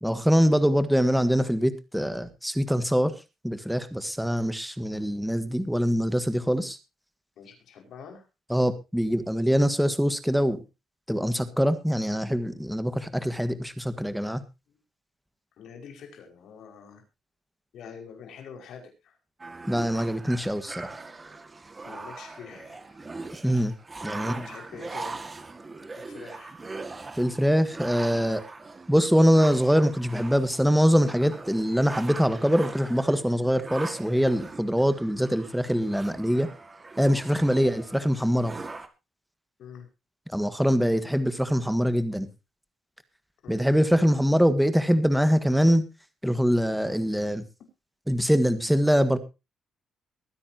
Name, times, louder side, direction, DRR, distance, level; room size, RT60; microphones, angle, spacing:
voice 1, 0.0-3.1 3.4-6.8 8.5-10.6 11.1-14.4 19.7-20.9 23.4-23.7 24.0-24.3 27.1-28.4 28.9-36.5 37.0-38.5 40.3-42.3 43.5-45.8 46.2-47.4 48.1-49.2, equal, ahead, 11 dB, 1.7 m, -23 dB
voice 2, 7.4-8.2 14.7-14.8 15.6-17.0 17.7-19.2 21.8-23.0 24.1-25.2 25.9-26.5 37.4-37.7 39.6-39.9 43.4-43.7, left 6 dB, 75° left, 4 dB, 5.5 m, -45 dB
sound 1, 19.4-38.9, right 3 dB, 25° right, 1.9 m, -41 dB
22.0 x 9.9 x 2.9 m, 0.27 s
cardioid pair, 90°, 0 cm